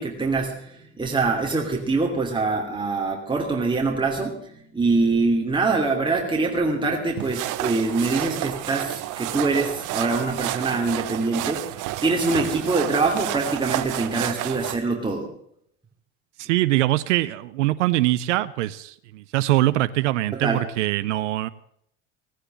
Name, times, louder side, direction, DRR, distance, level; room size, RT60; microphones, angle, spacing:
voice 1, 0.0-11.6 12.0-15.3 20.3-20.6, right 3 dB, 15° right, 0 dB, 2.8 m, -24 dB
sound 1, 7.2-14.8, right 15 dB, 60° right, 1.0 m, -30 dB
voice 2, 16.4-21.5, right 16 dB, 85° right, 15 dB, 0.6 m, -23 dB
17.0 x 9.9 x 7.8 m, 0.71 s
hypercardioid pair, 75°, 35 cm